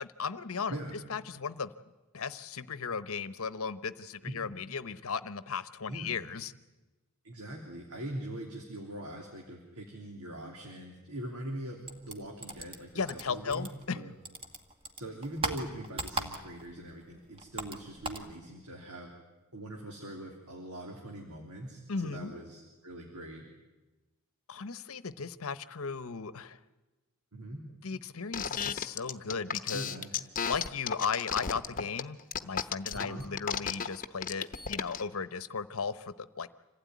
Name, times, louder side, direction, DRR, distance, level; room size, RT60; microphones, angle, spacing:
voice 1, 0.0-0.8 1.1-1.7 2.1-6.5 12.9-14.0 21.9-22.3 24.5-26.6 27.8-29.9 30.4-32.2 32.4-36.5, left 5 dB, 65° left, 14 dB, 0.9 m, -36 dB
voice 2, 7.2-13.7 13.9-14.1 15.0-19.1 19.5-23.5 27.3-27.6 29.7-30.1 32.9-33.3, right 1 dB, 85° right, 0 dB, 3.3 m, -42 dB
sound 1, 11.9-14.0 14.3-16.7 17.0-18.3, right 2 dB, 25° right, 1.9 m, -38 dB
sound 2, 28.3-35.0, left 7 dB, 40° left, 0.9 m, -33 dB
26.0 x 16.5 x 9.4 m, 1.1 s
head